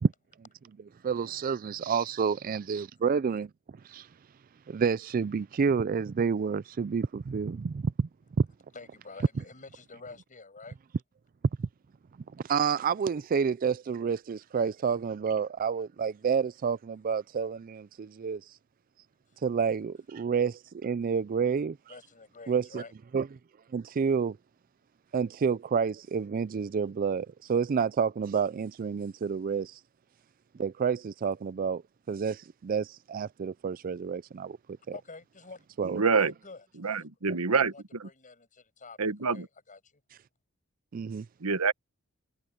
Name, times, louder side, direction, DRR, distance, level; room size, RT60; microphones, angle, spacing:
voice 1, 1.0-3.5 3.8-4.1 4.7-8.1 8.4-8.5 11.6-11.7 12.4-18.5 19.4-21.8 22.5-22.8 23.1-23.3 23.7-24.4 25.1-29.8 30.6-31.8 32.1-34.6 35.8-36.0 40.9-41.3, right 6 dB, 40° right, 0.4 m, -29 dB
voice 2, 8.7-10.8 19.3-19.4 21.9-22.9 34.9-35.7 36.2-37.1 37.6-40.0, left 3 dB, 35° left, 7.5 m, -48 dB
voice 3, 35.8-36.3 36.8-37.7 38.0-38.1 39.0-39.5 41.4-41.7, right 5 dB, 85° right, 1.2 m, -26 dB
head